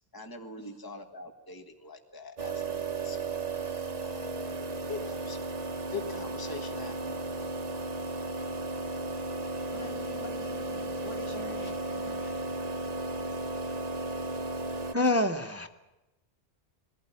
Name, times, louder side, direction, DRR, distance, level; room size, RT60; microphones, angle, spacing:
voice 1, 0.1-2.7 2.9-3.2 4.0-4.3 4.9-5.5 5.9-7.2, left 4 dB, 20° left, 5 dB, 1.7 m, -42 dB
sound 1, 2.4-15.0, right 3 dB, 40° right, 1.0 m, -35 dB
voice 2, 9.7-12.4, equal, 65° left, 3 dB, 4.2 m, -46 dB
voice 3, 14.9-15.7, left 1 dB, 15° right, 6 dB, 1.2 m, -26 dB
22.5 x 16.5 x 9.9 m, 1.0 s
omnidirectional pair, 1.2 m